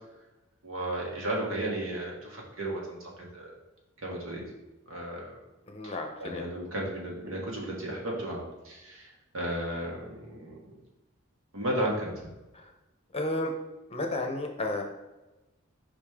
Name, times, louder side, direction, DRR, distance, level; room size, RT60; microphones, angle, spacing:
voice 1, 0.6-3.0 3.3-3.5 4.0-4.4 4.9-5.4 5.8-5.9 6.2-10.6 11.5-12.2, right 1 dB, 75° right, -2 dB, 1.8 m, -34 dB
voice 2, 5.7-6.4 12.5-12.7 13.1-13.5 13.9-14.8, left 2 dB, 30° left, 3 dB, 0.8 m, -32 dB
5.2 x 5.1 x 3.7 m, 1.0 s
head